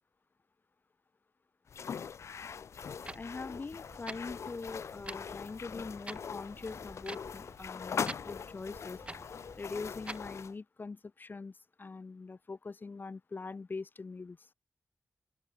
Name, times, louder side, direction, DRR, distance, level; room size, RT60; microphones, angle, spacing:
sound 1, 1.7-10.5, left 6 dB, 80° left, 0.5 m, -42 dB
Clock, 2.8-10.4, right 2 dB, 25° right, 1.0 m, -49 dB
voice 1, 3.1-14.5, left 4 dB, 45° left, 1.1 m, -43 dB
open air
wide cardioid pair, 105°, 5 cm